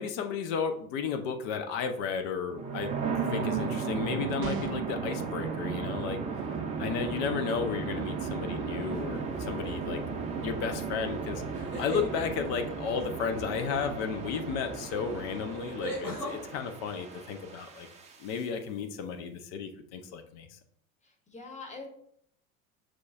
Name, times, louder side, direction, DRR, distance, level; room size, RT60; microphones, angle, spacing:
voice 1, 0.0-2.9 3.3-6.2 6.8-10.0 10.4-17.9 18.2-20.6, left 6 dB, 35° left, 7 dB, 0.4 m, -33 dB
sound 1, 2.5-18.4, right 5 dB, 15° right, 0.6 m, -35 dB
sound 2, 4.4-5.0, right 6 dB, 65° right, 0.5 m, -37 dB
sound 3, 8.9-9.4 11.5-12.1 14.4-14.5 15.8-16.4, right 1 dB, 90° left, 1.3 m, -36 dB
voice 2, 21.0-21.9, left 3 dB, 15° left, 2 dB, 1.0 m, -44 dB
6.1 x 2.2 x 2.5 m, 0.67 s
figure-of-eight pair, 70°, 44 cm